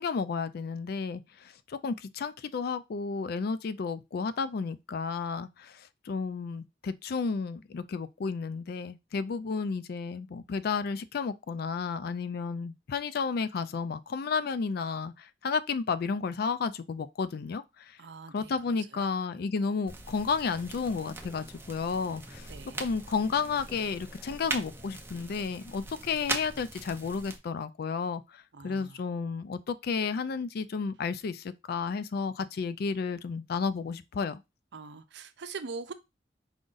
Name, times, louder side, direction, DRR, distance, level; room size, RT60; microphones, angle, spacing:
voice 1, 0.0-18.0 18.3-22.5 22.8-34.4, left 5 dB, 55° left, 0.4 m, -32 dB
voice 2, 18.0-18.5 18.9-19.1 22.5-22.9 28.5-29.0 34.7-35.9, right 4 dB, 65° right, 0.6 m, -42 dB
sound 1, 19.9-27.4, right 3 dB, 15° right, 0.7 m, -40 dB
5.0 x 2.5 x 3.8 m
head